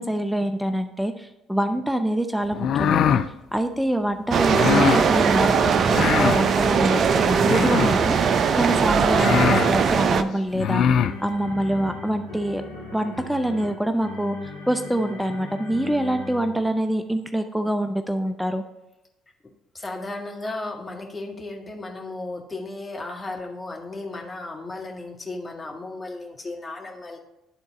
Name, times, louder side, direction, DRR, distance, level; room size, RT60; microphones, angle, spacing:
voice 1, 0.0-3.2 3.5-10.8 11.2-12.6 12.9-14.4 14.7-18.6, right 1 dB, ahead, 8 dB, 0.6 m, -25 dB
sound 1, 2.5-3.3 4.5-5.0 5.9-6.4 7.4-8.0 8.7-8.8 9.1-9.7 10.5-11.1, left 8 dB, 55° left, 0.4 m, -22 dB
sound 2, 4.3-10.2, right 6 dB, 50° right, 0.5 m, -20 dB
sound 3, 10.4-16.9, left 3 dB, 85° left, 1.3 m, -38 dB
voice 2, 19.7-27.2, left 2 dB, 25° left, 1 dB, 1.8 m, -35 dB
11.5 x 4.0 x 4.1 m, 0.96 s
hypercardioid pair, 50°, 0 cm